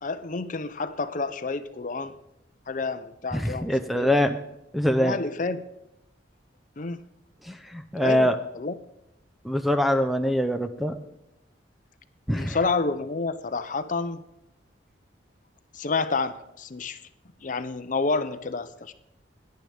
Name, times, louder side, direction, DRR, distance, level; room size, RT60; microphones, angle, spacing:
voice 1, 0.0-2.2 2.7-4.1 5.0-5.6 6.8-7.0 8.0-8.7 12.3-14.2 15.7-17.0 17.4-18.9, left 3 dB, 45° left, 11 dB, 0.6 m, -29 dB
voice 2, 3.3-4.4 4.7-5.2 7.4-8.4 9.4-10.9 12.3-12.6, equal, ahead, 8 dB, 0.6 m, -24 dB
17.5 x 10.5 x 3.4 m, 0.86 s
head